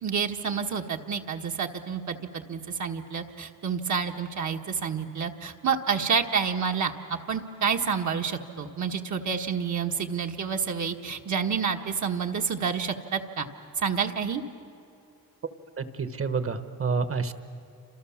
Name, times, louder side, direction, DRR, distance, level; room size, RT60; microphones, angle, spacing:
voice 1, 0.0-13.5 13.8-14.4, right 6 dB, 55° right, 3 dB, 1.4 m, -29 dB
voice 2, 15.8-17.3, right 5 dB, 40° right, 11 dB, 1.3 m, -28 dB
29.5 x 27.0 x 7.2 m, 2.6 s
wide cardioid pair, 165°, 34 cm